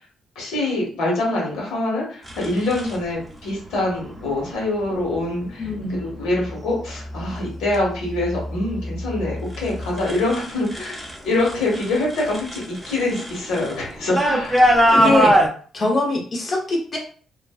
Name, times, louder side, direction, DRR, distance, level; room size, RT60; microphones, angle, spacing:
voice 1, 0.3-5.6 5.9-15.2, left 2 dB, 85° left, -2 dB, 1.1 m, -25 dB
sound 1, 2.3-3.0 4.1-4.4 5.0-5.4 6.0-6.5 6.9-11.2 11.4-15.5, equal, 5° right, 0.5 m, -22 dB
voice 2, 5.6-6.0 14.9-15.3 15.7-17.0, left 2 dB, 40° left, -1 dB, 0.8 m, -22 dB
2.4 x 2.2 x 2.3 m, 0.43 s
cardioid pair, 90°, 0 cm